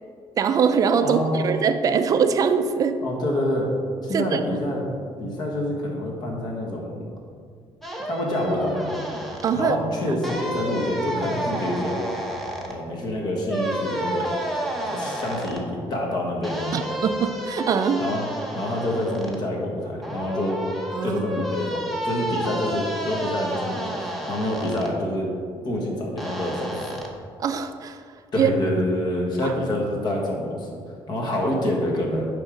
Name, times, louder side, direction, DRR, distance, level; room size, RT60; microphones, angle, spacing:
voice 1, 0.4-3.0 4.1-4.4 9.4-9.8 10.1-10.2 16.7-18.0 20.9-21.2 27.4-28.0 28.4-28.5 29.4-29.5, right 6 dB, 35° right, 9 dB, 0.4 m, -22 dB
voice 2, 1.0-1.6 3.0-3.7 4.0-4.8 5.2-7.0 8.0-9.0 9.5-12.4 12.7-14.3 14.8-16.8 18.0-18.3 18.5-20.6 21.0-25.3 25.6-26.9 28.3-32.3, left 1 dB, 45° left, -1 dB, 1.3 m, -27 dB
sound 1, 7.8-9.5 10.2-12.7 13.5-15.6 16.4-19.4 20.0-24.9 26.2-27.1, right 1 dB, ahead, 0.7 m, -31 dB
9.5 x 3.6 x 5.0 m, 2.2 s
cardioid pair, 170°, 10 cm